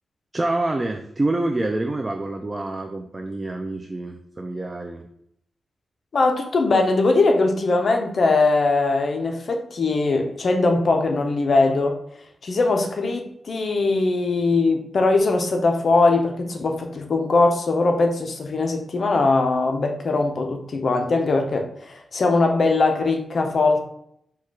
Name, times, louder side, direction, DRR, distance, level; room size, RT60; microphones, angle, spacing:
voice 1, 0.3-5.0, right 2 dB, 20° right, 4 dB, 0.3 m, -27 dB
voice 2, 6.1-12.0 12.4-23.8, left 3 dB, 50° left, 3 dB, 0.6 m, -21 dB
4.6 x 2.3 x 4.5 m, 0.71 s
wide cardioid pair, 145°, 0 cm